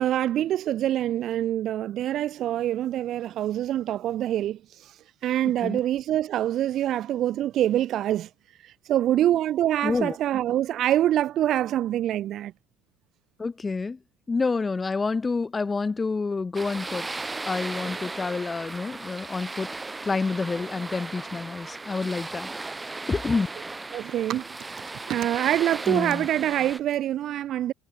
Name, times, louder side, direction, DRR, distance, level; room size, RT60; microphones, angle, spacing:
voice 1, 0.0-8.3 8.6-12.5 23.9-27.7, right 12 dB, 60° right, 3.4 m, -25 dB
voice 2, 9.8-10.1 13.4-14.0 14.3-17.1 17.5-19.7 20.0-22.5 23.1-23.5 25.9-26.3, left 4 dB, 25° left, 3.3 m, -28 dB
sound 1, 16.5-26.8, right 3 dB, 15° right, 6.5 m, -36 dB
supercardioid pair, 75°, 0 cm